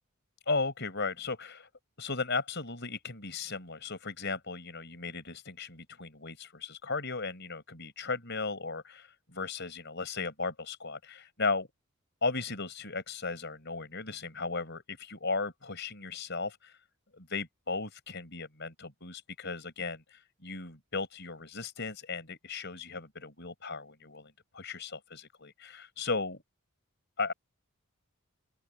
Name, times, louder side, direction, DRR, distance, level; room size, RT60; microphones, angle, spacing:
voice 1, 0.5-1.7 2.0-11.7 12.2-16.8 17.2-26.4 27.2-27.3, left 4 dB, 55° left, 5.1 m, -36 dB
open air
head